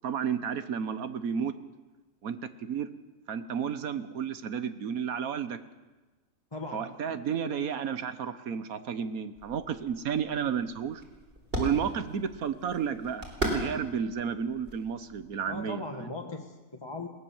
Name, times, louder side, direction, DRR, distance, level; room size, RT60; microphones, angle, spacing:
voice 1, 0.0-1.5 2.2-2.9 3.3-5.6 6.7-11.0 11.5-16.1, right 7 dB, 80° right, 12 dB, 1.5 m, -32 dB
voice 2, 6.5-7.0 15.5-17.1, left 2 dB, 20° left, 2 dB, 1.5 m, -39 dB
sound 1, 9.4-15.7, right 1 dB, 40° right, 4.4 m, -38 dB
21.0 x 18.0 x 7.2 m, 1.2 s
omnidirectional pair, 1.5 m